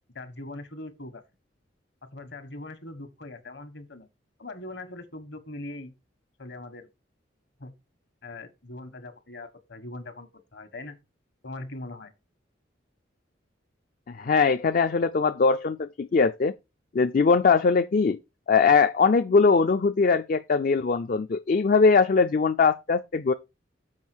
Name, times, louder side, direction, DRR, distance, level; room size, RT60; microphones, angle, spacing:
voice 1, 0.1-1.2 2.0-4.1 4.4-5.9 6.4-6.9 7.6-7.8 8.2-11.0 11.4-12.1, left 2 dB, 60° left, 1.4 m, -41 dB
voice 2, 14.1-16.5 16.9-18.2 18.5-23.3, left 4 dB, 45° left, 0.4 m, -21 dB
7.3 x 5.2 x 6.1 m
head